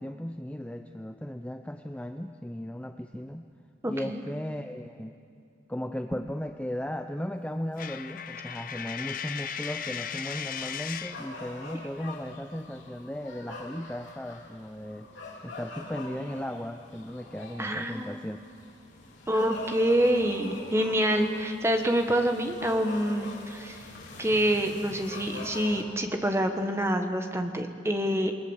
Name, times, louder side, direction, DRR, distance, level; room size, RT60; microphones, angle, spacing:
voice 1, 0.0-3.5 3.8-5.2 5.7-15.1 15.4-18.4, left 1 dB, 5° left, 6 dB, 0.5 m, -36 dB
voice 2, 3.8-4.2 17.6-18.2 19.3-23.8 24.2-28.3, equal, 15° right, 5 dB, 1.4 m, -26 dB
Coin (dropping), 7.8-11.3, left 8 dB, 45° left, 0.7 m, -36 dB
sound 1, 10.3-25.8, left 2 dB, 70° left, 4.1 m, -44 dB
27.5 x 20.0 x 7.3 m, 2.4 s
head